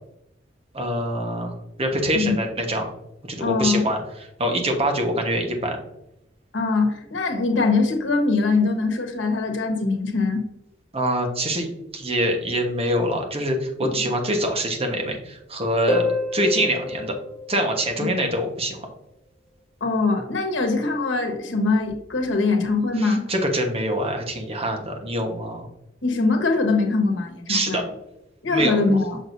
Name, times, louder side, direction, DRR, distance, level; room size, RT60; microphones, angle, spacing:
voice 1, 0.7-1.5 1.8-2.9 3.2-4.0 4.4-5.8 10.9-16.0 16.3-17.1 17.5-18.8 23.0-25.6 27.5-27.8 28.5-28.8, right 1 dB, 30° right, 3 dB, 1.2 m, -24 dB
voice 2, 3.4-3.9 6.5-10.4 14.0-14.1 18.0-18.1 19.8-23.2 26.0-27.8 28.4-29.2, left 3 dB, 80° left, 3 dB, 1.3 m, -22 dB
Harp, 15.9-18.4 21.9-22.0, left 2 dB, 20° left, 2.0 m, -28 dB
6.6 x 6.2 x 2.6 m, 0.85 s
head